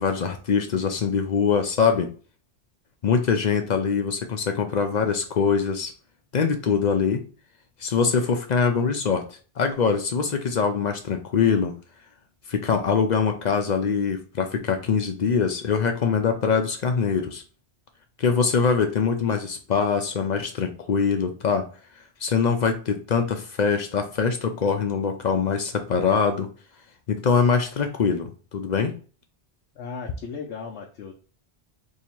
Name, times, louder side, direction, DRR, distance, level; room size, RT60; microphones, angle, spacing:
voice 1, 0.0-2.1 3.0-5.9 6.3-7.2 7.8-9.2 9.6-11.7 12.5-17.4 18.2-21.7 22.2-26.5 27.1-28.9, left 6 dB, 55° left, 6 dB, 0.5 m, -23 dB
voice 2, 29.7-31.1, left 5 dB, 85° left, 1 dB, 0.9 m, -36 dB
2.8 x 2.7 x 4.3 m, 0.38 s
omnidirectional pair, 1.1 m